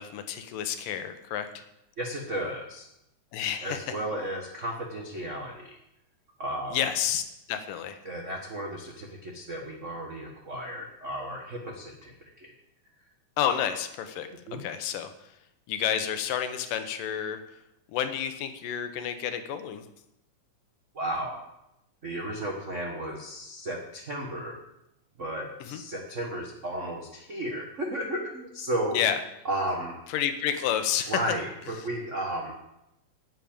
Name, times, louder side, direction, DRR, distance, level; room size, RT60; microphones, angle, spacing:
voice 1, 0.0-1.6 3.3-3.9 6.7-7.2 7.5-8.0 13.4-14.3 14.6-15.1 15.7-17.4 17.9-19.8 25.6-25.8 28.9-29.2 30.1-31.2 31.8-31.9, left 9 dB, 90° left, 8 dB, 2.7 m, -30 dB
voice 2, 2.0-2.8 3.6-5.8 6.4-6.8 8.0-12.5 14.5-14.6 20.9-21.4 22.0-24.6 25.2-29.0 29.4-30.0 31.1-32.6, right 1 dB, 50° right, 0 dB, 0.8 m, -34 dB
9.7 x 8.4 x 8.8 m, 0.85 s
omnidirectional pair, 3.7 m